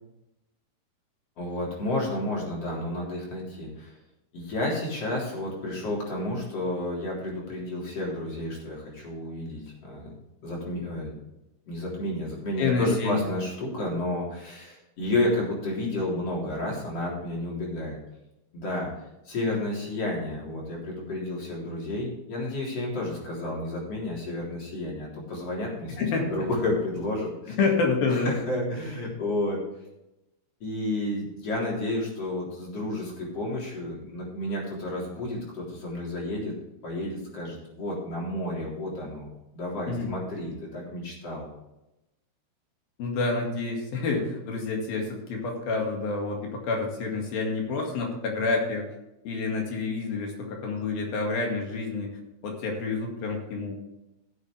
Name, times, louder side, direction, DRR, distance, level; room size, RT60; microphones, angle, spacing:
voice 1, 1.4-3.9 4.3-10.2 10.4-11.1 11.7-18.0 18.5-27.6 28.1-29.6 30.6-36.5 36.8-39.3 39.5-41.5, left 1 dB, 40° left, -4 dB, 4.3 m, -31 dB
voice 2, 12.6-13.3 26.0-26.5 27.6-28.4 39.9-40.1 43.0-48.8 49.3-52.2 52.4-53.8, left 3 dB, 65° left, 1 dB, 3.8 m, -28 dB
16.0 x 8.1 x 3.4 m, 0.92 s
omnidirectional pair, 4.6 m